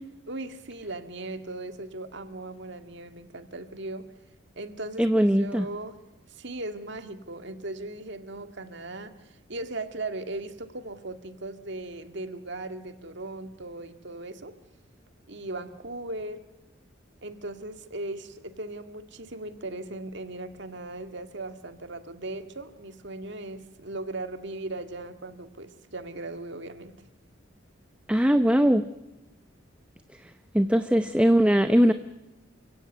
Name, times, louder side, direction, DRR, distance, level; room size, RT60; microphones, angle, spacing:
voice 1, 0.3-4.0 4.6-6.0 6.3-14.5 15.3-16.4 17.2-26.9, right 2 dB, 60° right, 8 dB, 1.9 m, -38 dB
voice 2, 5.0-5.6 28.1-28.8 30.5-31.9, equal, 5° right, 10 dB, 0.7 m, -20 dB
28.5 x 17.0 x 8.0 m, 1.0 s
head